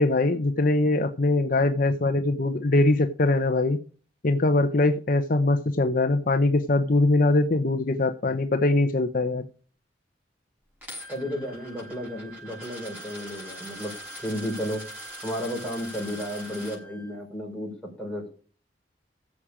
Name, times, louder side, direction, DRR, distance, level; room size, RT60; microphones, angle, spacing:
voice 1, 0.0-3.8 4.2-9.4, left 2 dB, 50° left, 8 dB, 0.8 m, -22 dB
Coin (dropping), 10.8-16.8, left 1 dB, 10° right, 6.1 m, -43 dB
Wind instrument woodwind instrument, 11.0-17.2, right 3 dB, 55° right, 3.5 m, -46 dB
voice 2, 11.1-13.9 14.2-14.9 15.2-18.3, equal, 5° left, -2 dB, 4.9 m, -33 dB
14.5 x 7.4 x 5.0 m, 0.40 s
head